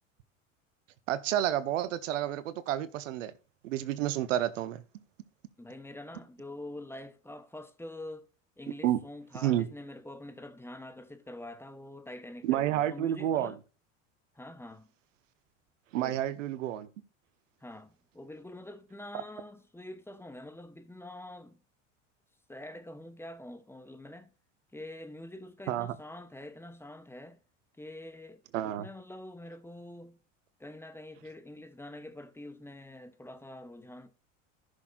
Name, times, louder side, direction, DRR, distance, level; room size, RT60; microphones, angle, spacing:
voice 1, 1.1-3.3 3.6-4.8 8.8-9.0 9.4-9.7 12.4-13.5 15.9-16.9 19.1-19.2 25.7-25.9 28.5-28.9, right 12 dB, 75° right, 0.8 m, -30 dB
voice 2, 5.6-8.3 8.6-13.6 14.3-14.9 15.9-16.2 17.6-21.6 22.5-24.3 24.7-27.4 27.8-30.2 30.6-34.1, left 1 dB, 5° left, 0.9 m, -45 dB
14.0 x 6.3 x 2.5 m
hypercardioid pair, 80°, 38 cm